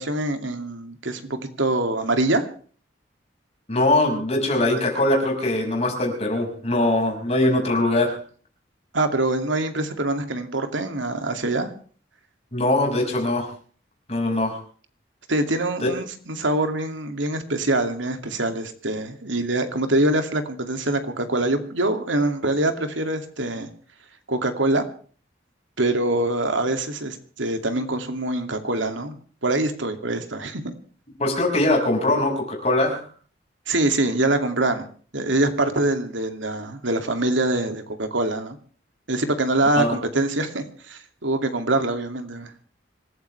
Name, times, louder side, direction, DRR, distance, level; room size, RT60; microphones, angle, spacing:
voice 1, 0.0-2.4 8.9-11.7 15.3-23.7 24.3-24.8 25.8-29.2 29.4-30.8 33.7-34.9 35.1-38.6 39.1-42.5, right 2 dB, 90° right, 7 dB, 2.5 m, -24 dB
voice 2, 3.7-8.2 12.5-13.5 14.1-14.6 15.8-15.9 31.2-33.0 39.8-40.0, left 1 dB, 35° left, 1 dB, 5.8 m, -22 dB
26.0 x 14.5 x 3.4 m, 0.43 s
head